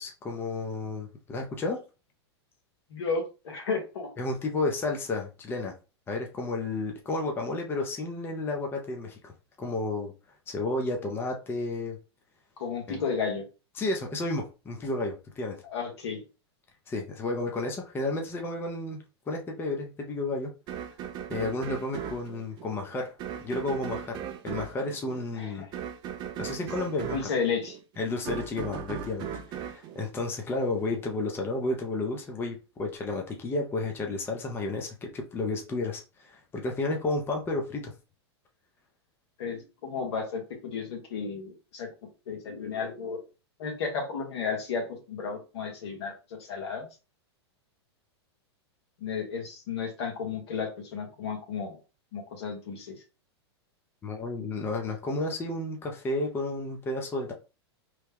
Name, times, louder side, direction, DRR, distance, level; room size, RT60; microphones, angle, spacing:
voice 1, 0.0-1.8 4.2-5.7 6.1-9.3 9.6-10.1 10.5-12.0 12.9-13.0 13.8-15.6 16.9-20.5 21.3-23.1 23.4-25.7 26.4-27.2 28.0-37.9 54.0-57.3, left 2 dB, 15° left, 0.6 m, -32 dB
voice 2, 2.9-4.1 12.6-13.4 15.6-16.2 25.3-25.7 27.1-27.8 39.4-43.2 43.6-46.9 49.0-51.8 52.1-53.0, left 5 dB, 70° left, 1.2 m, -33 dB
sound 1, 20.7-30.9, right 9 dB, 30° right, 0.4 m, -38 dB
3.0 x 2.1 x 3.4 m
hypercardioid pair, 120°, 14 cm